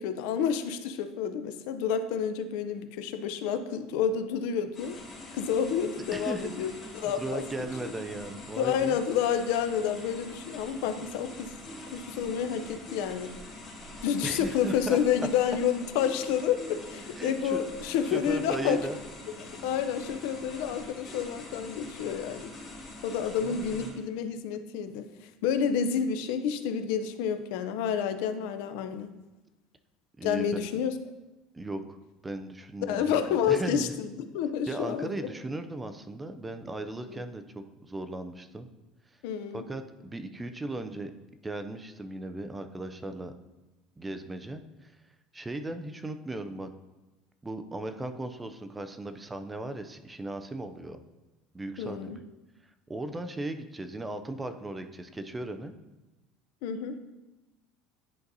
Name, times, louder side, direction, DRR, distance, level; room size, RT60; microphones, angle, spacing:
voice 1, 0.0-5.0 5.3-7.7 8.6-11.5 11.9-13.3 14.0-18.8 19.4-22.5 23.0-25.1 25.4-29.1 30.2-30.9 32.8-35.1 37.1-37.2 39.2-39.6 51.8-52.2 56.6-57.0, left 8 dB, 75° left, 10 dB, 0.5 m, -29 dB
sound 1, 4.7-23.9, left 2 dB, 25° left, 1.8 m, -44 dB
voice 2, 6.1-6.5 7.0-9.0 14.2-15.0 17.2-17.6 17.9-19.0 23.4-24.0 30.2-30.6 31.5-32.0 32.2-33.9 34.7-38.7 39.5-41.1 41.4-43.3 44.0-44.9 45.3-46.7 47.4-51.0 51.5-52.1 52.9-55.7, right 2 dB, 10° right, 9 dB, 0.4 m, -37 dB
10.5 x 4.0 x 2.7 m, 1.0 s
cardioid pair, 150°, 0 cm